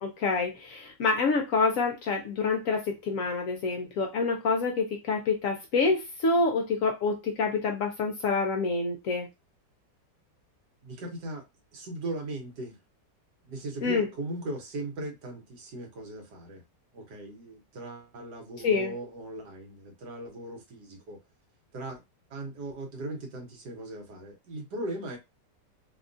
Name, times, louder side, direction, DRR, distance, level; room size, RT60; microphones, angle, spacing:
voice 1, 0.0-9.3 13.8-14.1 18.6-18.9, left 4 dB, 65° left, 0.8 m, -27 dB
voice 2, 10.8-11.4 11.7-12.8 13.5-16.6 16.9-21.2 21.7-22.0 22.3-25.2, right 1 dB, 85° right, 1.7 m, -38 dB
3.4 x 2.3 x 2.6 m
omnidirectional pair, 1.8 m